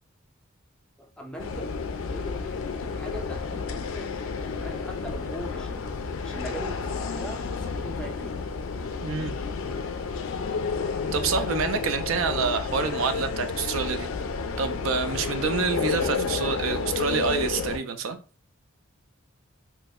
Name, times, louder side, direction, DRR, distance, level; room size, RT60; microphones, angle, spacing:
voice 1, 1.0-1.7 2.1-6.0 6.2-8.3, equal, 5° left, 0.4 m, -41 dB
sound 1, 1.4-17.8, left 5 dB, 70° left, 0.4 m, -31 dB
voice 2, 9.0-9.3 11.1-14.1 14.6-18.2, right 5 dB, 70° right, 0.4 m, -27 dB
3.0 x 2.1 x 3.5 m
head